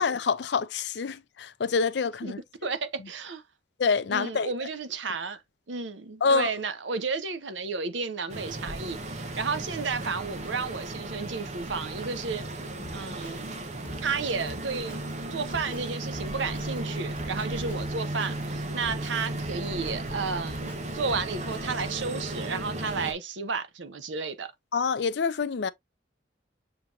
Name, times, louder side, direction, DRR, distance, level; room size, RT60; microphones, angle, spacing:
voice 1, 0.0-2.4 3.8-4.5 6.2-6.5 24.7-25.7, left 5 dB, 70° left, 0.5 m, -26 dB
voice 2, 2.6-3.4 4.1-5.4 5.7-12.5 12.9-13.6 14.0-15.0 15.3-24.5, right 4 dB, 85° right, 0.8 m, -32 dB
sound 1, 8.3-23.1, right 1 dB, 35° right, 0.9 m, -35 dB
Drum kit, 12.8-21.6, equal, 5° right, 1.7 m, -46 dB
7.2 x 2.9 x 2.5 m
head